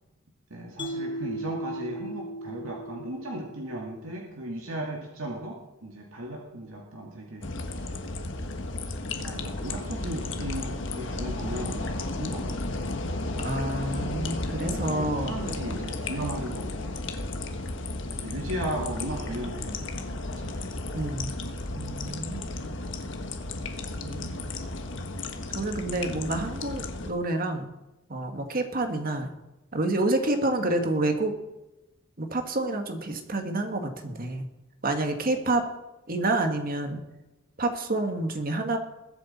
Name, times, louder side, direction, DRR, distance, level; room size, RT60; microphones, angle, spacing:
voice 1, 0.5-7.5 9.2-13.0 14.9-17.3 18.0-20.7, right 1 dB, 85° right, -1 dB, 2.2 m, -36 dB
Mallet percussion, 0.8-4.1, right 1 dB, 25° left, 0.8 m, -37 dB
sound 1, 7.4-27.1, left 2 dB, 65° left, 1.4 m, -33 dB
voice 2, 13.4-15.4 20.9-21.3 21.7-22.7 24.0-24.4 25.5-27.7 28.1-29.3 29.7-31.3 32.2-34.5 34.8-35.7 36.1-37.0 37.6-38.8, right 2 dB, 45° right, 6 dB, 1.7 m, -28 dB
21.0 x 8.2 x 4.3 m, 1.0 s
head